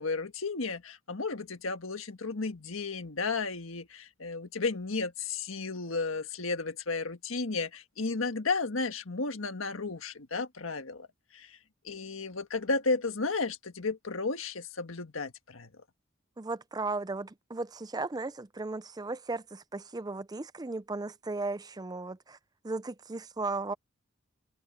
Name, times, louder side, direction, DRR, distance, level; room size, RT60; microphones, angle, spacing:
voice 1, 0.0-11.1 11.3-11.6 11.8-15.7, left 3 dB, 85° left, 1.6 m, -33 dB
voice 2, 16.4-22.4 22.6-23.7, right 3 dB, 20° right, 0.5 m, -36 dB
head